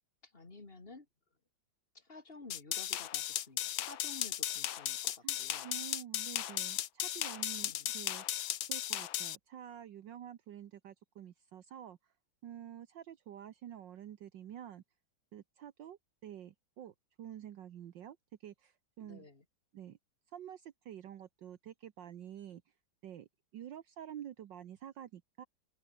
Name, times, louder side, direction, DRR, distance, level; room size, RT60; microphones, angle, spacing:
voice 1, 0.2-1.1 1.9-5.7 7.6-7.9 19.0-19.4, left 3 dB, 25° left, 2.6 m, -53 dB
sound 1, 2.5-9.4, left 12 dB, 75° left, 1.7 m, -36 dB
voice 2, 5.6-12.0 12.4-14.8 15.3-18.2 18.4-19.3 19.7-20.0 20.3-22.6 23.0-25.5, right 10 dB, 65° right, 1.6 m, -49 dB
open air
omnidirectional pair, 2.2 m